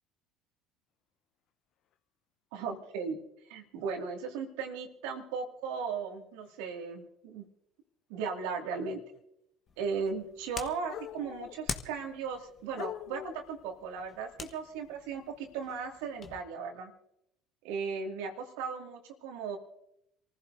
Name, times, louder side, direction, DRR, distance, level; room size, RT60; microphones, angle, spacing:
voice 1, 2.5-3.2 3.5-7.4 8.1-9.0 9.8-16.9 17.6-19.6, right 5 dB, 75° right, 3 dB, 2.3 m, -37 dB
sound 1, 3.8-3.9 5.3-5.4 6.4-6.6 9.1-9.2 10.9-11.7 12.3-12.4 12.8-13.6, left 11 dB, 55° left, 0.6 m, -43 dB
sound 2, 9.7-16.4, left 6 dB, 40° left, 1.3 m, -45 dB
27.5 x 15.5 x 2.7 m, 0.79 s
hypercardioid pair, 65°, 0 cm